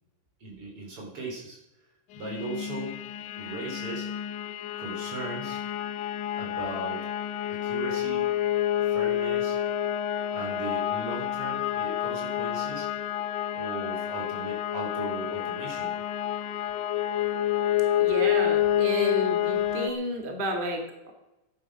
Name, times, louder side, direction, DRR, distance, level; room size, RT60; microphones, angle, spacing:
voice 1, 0.4-1.6 2.1-3.0 3.4-4.1 4.8-5.6 6.4-7.1 7.5-8.3 8.8-9.6 10.3-12.9 13.5-16.0, right 2 dB, 45° right, -2 dB, 4.7 m, -38 dB
sound 1, 2.2-19.9, left 11 dB, 90° left, 2.4 m, -29 dB
voice 2, 18.0-21.1, equal, 20° right, 2 dB, 1.9 m, -31 dB
13.5 x 11.0 x 6.1 m, 0.93 s
omnidirectional pair, 3.5 m